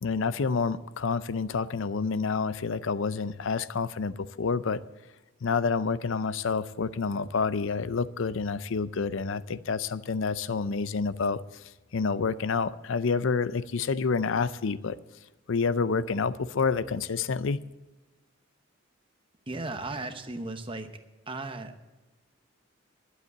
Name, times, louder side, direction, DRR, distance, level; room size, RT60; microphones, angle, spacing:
voice 1, 0.0-4.8 5.4-11.4 11.9-15.0 15.5-17.6, left 5 dB, 65° left, 16 dB, 0.5 m, -28 dB
voice 2, 19.5-20.9 21.3-21.9, right 2 dB, 25° right, 8 dB, 0.9 m, -36 dB
12.0 x 8.1 x 8.3 m, 1.1 s
head